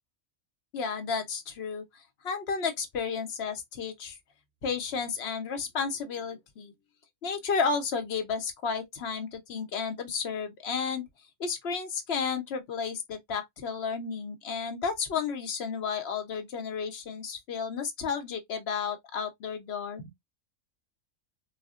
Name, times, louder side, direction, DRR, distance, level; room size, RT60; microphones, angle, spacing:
voice 1, 0.7-1.8 2.2-4.2 4.6-6.7 7.2-11.1 11.4-20.1, left 5 dB, 55° left, 0.9 m, -32 dB
4.1 x 2.2 x 2.4 m
omnidirectional pair, 1.4 m